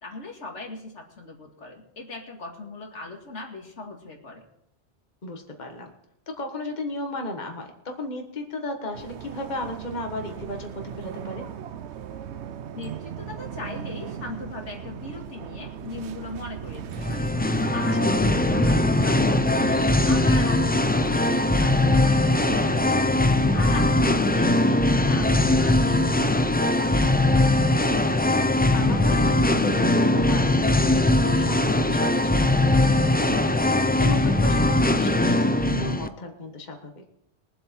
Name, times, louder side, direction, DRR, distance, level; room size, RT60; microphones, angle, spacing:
voice 1, 0.0-4.5 12.7-17.3 17.7-23.1 23.5-27.6, left 2 dB, 85° left, 1 dB, 2.4 m, -39 dB
voice 2, 5.2-5.9 6.3-11.5 28.7-33.6 34.0-37.0, left 1 dB, 40° left, 3 dB, 1.5 m, -34 dB
sound 1, 8.9-26.3, right 8 dB, 75° right, 1.0 m, -38 dB
Singing, 16.9-36.1, left 2 dB, 15° left, 0.3 m, -21 dB
22.0 x 7.8 x 4.5 m, 0.78 s
omnidirectional pair, 1.2 m